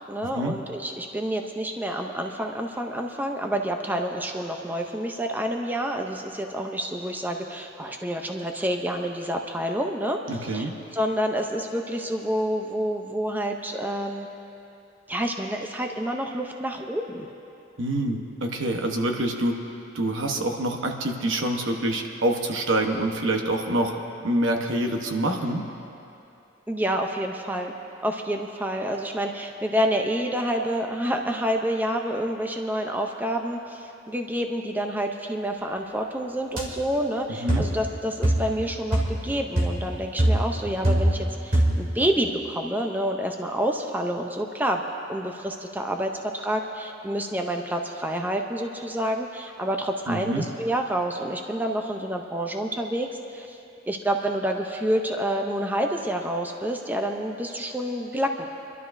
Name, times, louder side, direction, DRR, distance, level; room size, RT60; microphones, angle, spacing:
voice 1, 0.1-14.3 15.1-17.3 26.7-27.7 28.0-44.8 45.1-53.6 53.9-58.5, equal, 10° right, 3 dB, 0.6 m, -28 dB
voice 2, 10.3-10.7 17.8-19.5 19.9-23.9 24.2-25.6 37.4-37.6 50.1-50.4, right 1 dB, 75° right, 3 dB, 1.1 m, -26 dB
sound 1, 36.6-36.7 37.5-37.8 38.2-38.6 38.9-39.2 39.6-39.9 40.2-41.3 41.5-41.9, right 1 dB, 50° right, 2.4 m, -22 dB
29.0 x 12.0 x 2.6 m, 2.7 s
head